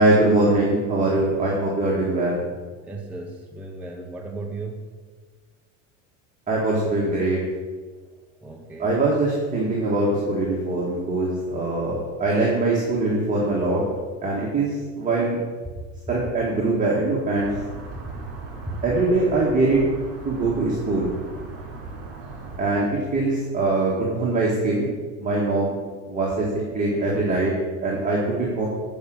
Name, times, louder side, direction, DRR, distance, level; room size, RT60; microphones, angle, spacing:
voice 1, 0.0-2.4 6.5-7.4 8.8-13.8 14.2-15.4 16.1-17.5 18.8-19.8 20.2-21.1 22.6-24.9 25.2-25.8 26.1-27.5 27.8-28.7, right 2 dB, 20° right, -5 dB, 1.9 m, -22 dB
voice 2, 2.8-4.9 8.4-8.9 18.7-18.8, right 3 dB, 5° right, 0 dB, 0.6 m, -36 dB
sound 1, 17.4-22.6, right 3 dB, 40° right, 2.8 m, -38 dB
8.4 x 5.2 x 6.3 m, 1.4 s
supercardioid pair, 130°, 38 cm